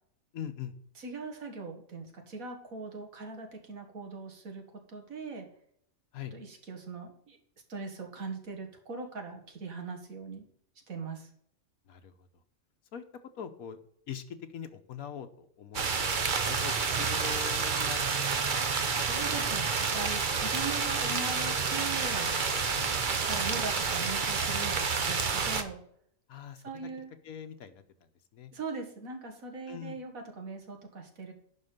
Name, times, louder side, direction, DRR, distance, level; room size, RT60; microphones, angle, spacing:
voice 1, 0.3-0.7 6.1-6.3 11.9-12.1 12.9-13.0 13.4-13.8 14.1-18.6 22.7-22.9 26.3-26.6 27.2-27.8 28.3-28.5 29.7-30.0, left 8 dB, 85° left, 7 dB, 1.3 m, -42 dB
voice 2, 1.0-4.6 4.9-5.5 6.3-7.4 7.7-10.5 10.9-11.3 19.0-19.7 19.9-22.3 23.2-25.8 26.6-27.1 28.5-31.3, right 3 dB, 75° right, 3 dB, 2.2 m, -40 dB
sound 1, 15.7-25.6, right 5 dB, 40° right, 0.9 m, -29 dB
11.0 x 4.3 x 6.6 m, 0.66 s
omnidirectional pair, 1.5 m